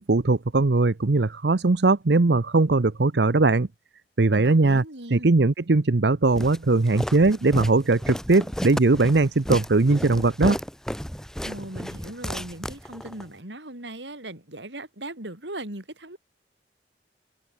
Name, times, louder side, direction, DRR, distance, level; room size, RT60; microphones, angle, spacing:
voice 1, 0.0-3.7 4.2-4.8 5.1-10.6, right 3 dB, 70° right, 0.8 m, -20 dB
voice 2, 4.3-5.3 11.4-16.2, right 1 dB, 90° right, 6.3 m, -38 dB
Walk footsteps, 6.4-13.3, equal, 5° left, 1.4 m, -33 dB
head